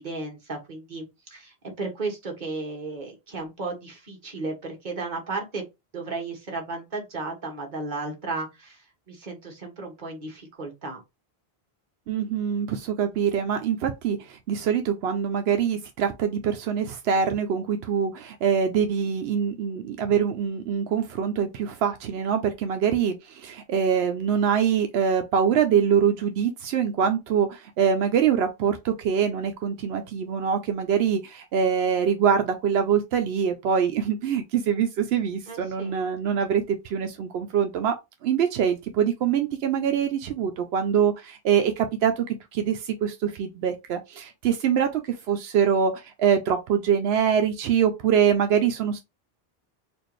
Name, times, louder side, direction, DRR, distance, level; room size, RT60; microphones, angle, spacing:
voice 1, 0.0-5.6 5.9-11.0 35.5-36.0, right 3 dB, 50° right, 1.4 m, -34 dB
voice 2, 12.1-37.9 38.2-42.2 42.5-49.0, right 7 dB, 85° right, 0.8 m, -24 dB
4.3 x 2.5 x 3.1 m
omnidirectional pair, 1.0 m